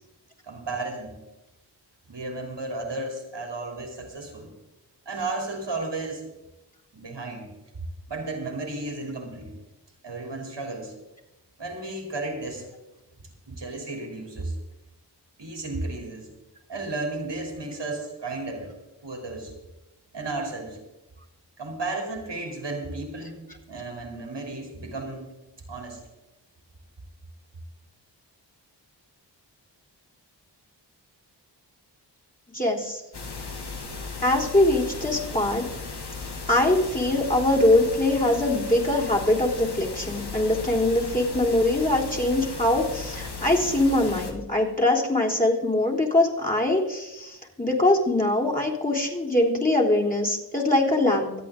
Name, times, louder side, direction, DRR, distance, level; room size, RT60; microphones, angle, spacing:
voice 1, 0.5-1.1 2.1-4.5 5.0-6.3 6.9-7.5 8.1-9.5 10.0-10.9 11.6-12.7 13.5-14.5 15.4-16.3 16.7-18.7 19.0-19.5 20.1-20.8 21.6-25.3 25.7-26.0, right 2 dB, 75° right, 2 dB, 3.4 m, -33 dB
voice 2, 32.5-33.0 34.2-35.7 36.5-51.3, left 1 dB, 20° left, 0 dB, 3.6 m, -22 dB
sound 1, 33.1-44.3, left 4 dB, 65° left, 2.1 m, -36 dB
25.0 x 8.7 x 3.8 m, 0.98 s
cardioid pair, 50°, 43 cm